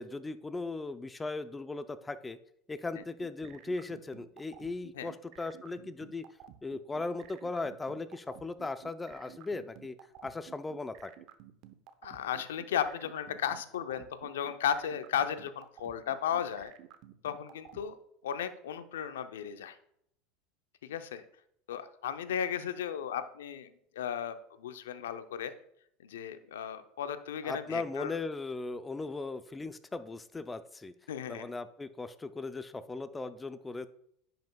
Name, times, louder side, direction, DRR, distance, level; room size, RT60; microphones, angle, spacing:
voice 1, 0.0-2.4 2.7-6.2 6.6-10.0 10.2-11.1 27.4-30.9 31.3-33.9, left 3 dB, 15° left, 12 dB, 0.5 m, -38 dB
sound 1, 3.0-17.8, right 12 dB, 55° right, 0.7 m, -52 dB
voice 2, 12.0-16.7 17.2-18.0 18.2-19.8 20.8-21.2 21.7-23.7 24.0-25.5 26.0-28.2 31.1-31.5, left 9 dB, 85° left, 10 dB, 0.6 m, -35 dB
10.0 x 5.9 x 2.3 m, 0.71 s
hypercardioid pair, 95°, 0 cm